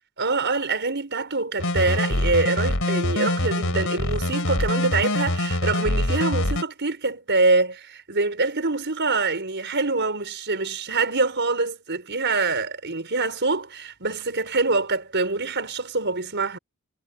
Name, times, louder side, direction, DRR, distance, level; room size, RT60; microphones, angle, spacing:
voice 1, 0.2-16.6, right 3 dB, 50° right, 5.8 m, -25 dB
sound 1, 1.6-6.6, left 1 dB, 65° left, 4.5 m, -24 dB
head